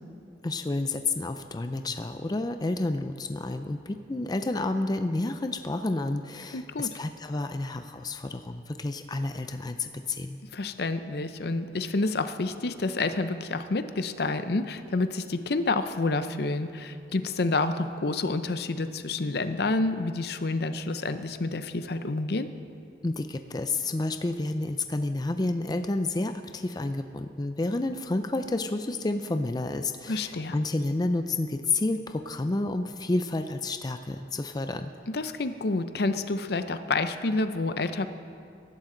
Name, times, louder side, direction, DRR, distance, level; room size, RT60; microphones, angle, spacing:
voice 1, 0.4-10.4 23.0-34.9, left 2 dB, 25° left, 8 dB, 0.4 m, -30 dB
voice 2, 6.5-7.0 10.5-22.5 30.1-30.6 35.1-38.1, left 3 dB, 65° left, 10 dB, 0.7 m, -29 dB
22.5 x 11.5 x 3.9 m, 2.7 s
head